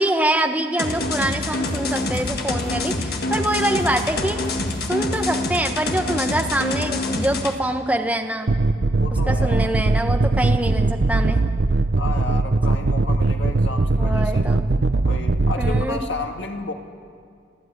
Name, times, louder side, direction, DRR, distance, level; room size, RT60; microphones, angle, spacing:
voice 1, 0.0-4.4 4.9-8.5 9.3-11.4 14.0-14.7 15.6-16.0, right 1 dB, 5° right, 4 dB, 1.1 m, -24 dB
sound 1, 0.8-7.5, left 2 dB, 50° left, 1.7 m, -26 dB
sound 2, 1.7-2.3 2.6-3.0 3.5-4.2 4.4-4.8, right 1 dB, 40° right, 4.1 m, -38 dB
sound 3, 8.5-15.9, right 2 dB, 60° right, 0.7 m, -20 dB
voice 2, 9.0-9.7 11.1-11.3 12.0-14.5 15.0-16.7, left 3 dB, 70° left, 3 dB, 1.9 m, -32 dB
25.5 x 14.5 x 9.8 m, 2.2 s
head